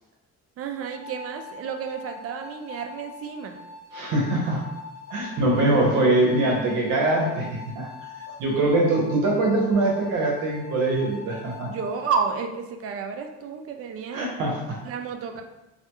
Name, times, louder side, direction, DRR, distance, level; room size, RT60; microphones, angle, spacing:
voice 1, 0.6-3.6 11.6-14.3 14.8-15.4, right 6 dB, 50° right, 4 dB, 0.4 m, -31 dB
sound 1, 0.9-12.1, left 5 dB, 35° right, 0.9 m, -43 dB
voice 2, 3.9-4.6 5.1-7.9 8.4-11.7 14.1-14.8, right 2 dB, 85° right, -1 dB, 0.8 m, -23 dB
2.4 x 2.2 x 2.8 m, 0.98 s
cardioid pair, 90°, 30 cm